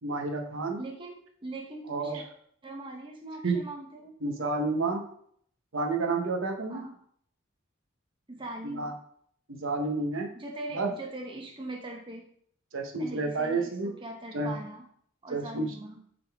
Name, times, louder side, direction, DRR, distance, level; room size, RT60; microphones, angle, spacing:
voice 1, 0.0-0.8 1.9-2.2 3.4-3.6 4.2-5.0 5.7-6.8 8.6-8.9 9.5-10.3 10.7-10.9 12.7-13.9 14.3-14.5 15.3-15.7, right 3 dB, 65° right, 2 dB, 1.0 m, -30 dB
voice 2, 0.8-2.2 2.6-4.1 6.7-7.0 8.3-9.0 10.3-12.3 13.0-14.8 15.2-16.0, right 2 dB, 25° right, 1 dB, 0.9 m, -41 dB
9.0 x 4.0 x 3.5 m, 0.63 s
head